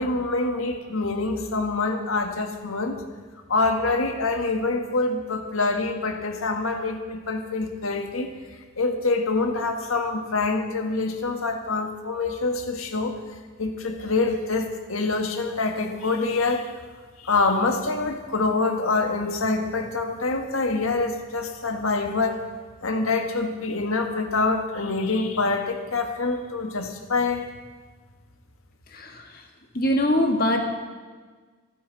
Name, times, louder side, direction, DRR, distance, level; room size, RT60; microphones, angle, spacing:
voice 1, 0.0-3.0 3.5-8.3 8.8-13.2 13.6-16.7 17.2-22.4 22.8-27.5, left 3 dB, 90° left, 4 dB, 1.7 m, -25 dB
voice 2, 29.7-30.6, left 1 dB, 45° left, 3 dB, 1.8 m, -22 dB
28.0 x 9.3 x 4.1 m, 1.4 s
head